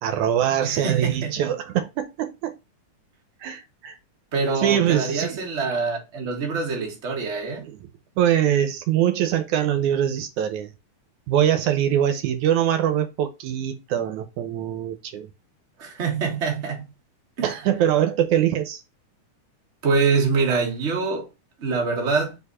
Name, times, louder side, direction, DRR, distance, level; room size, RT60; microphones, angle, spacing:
voice 1, 0.0-2.5 3.4-4.0 4.6-5.5 7.6-7.9 8.2-10.7 11.3-15.3 17.4-18.8, right 10 dB, 75° right, 2.1 m, -23 dB
voice 2, 0.6-1.3 4.3-7.7 15.8-16.8 17.4-17.5 19.8-21.2 21.6-22.4, right 4 dB, 30° right, 1.5 m, -25 dB
5.0 x 4.6 x 4.2 m
omnidirectional pair, 3.5 m